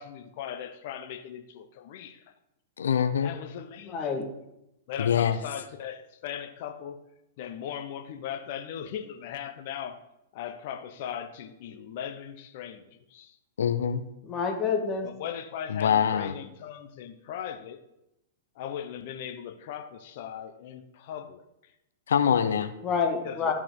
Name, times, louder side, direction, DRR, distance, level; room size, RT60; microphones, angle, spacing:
voice 1, 0.0-2.3 3.2-4.0 4.9-7.0 7.4-10.0 10.3-13.4 15.0-17.8 18.5-21.4 23.2-23.5, left 9 dB, 55° left, 7 dB, 0.9 m, -38 dB
voice 2, 2.8-3.3 5.0-5.4 13.6-14.0 15.7-16.3 22.1-22.7, left 8 dB, 85° left, 10 dB, 0.7 m, -24 dB
voice 3, 3.9-4.3 14.3-15.1 22.8-23.5, left 5 dB, 25° left, 2 dB, 1.6 m, -28 dB
13.0 x 4.9 x 3.8 m, 0.86 s
hypercardioid pair, 125°, 0 cm